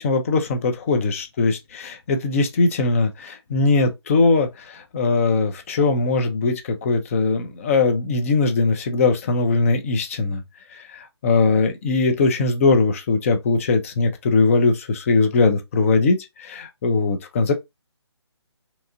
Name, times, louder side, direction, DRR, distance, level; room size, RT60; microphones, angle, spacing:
voice 1, 0.0-10.4 10.7-17.5, left 3 dB, 30° left, 0.5 m, -20 dB
2.9 x 2.4 x 2.5 m
figure-of-eight pair, 145°, 15 cm